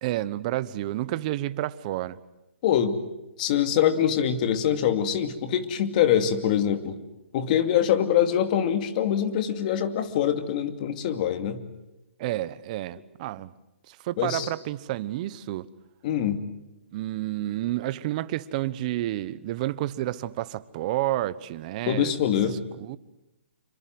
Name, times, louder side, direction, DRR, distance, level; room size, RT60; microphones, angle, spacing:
voice 1, 0.0-2.2 12.2-13.5 13.9-15.7 16.9-22.1 22.8-23.0, right 15 dB, 35° right, 16 dB, 1.1 m, -30 dB
voice 2, 2.6-3.0 3.4-7.0 7.3-11.6 14.2-14.5 16.0-16.4 21.9-22.6, left 9 dB, 40° left, 9 dB, 2.6 m, -24 dB
27.5 x 24.0 x 7.8 m, 0.93 s
hypercardioid pair, 150°, 7 cm